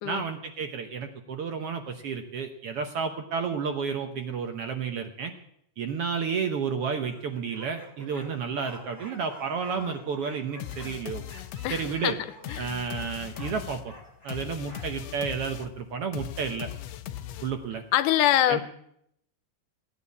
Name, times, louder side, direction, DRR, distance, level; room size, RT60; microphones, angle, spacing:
voice 1, 0.0-5.3 5.8-11.2 11.7-12.2 12.6-13.9 14.2-16.7 17.4-17.8 18.5-18.6, right 6 dB, 65° right, 6 dB, 1.5 m, -31 dB
sound 1, 7.0-15.2, right 1 dB, 5° right, 2.1 m, -48 dB
sound 2, 10.6-17.8, left 11 dB, 70° left, 1.7 m, -39 dB
voice 2, 11.6-12.2 12.5-12.7 17.9-18.6, left 13 dB, 90° left, 13 dB, 2.3 m, -24 dB
16.0 x 9.6 x 8.4 m, 0.73 s
omnidirectional pair, 3.6 m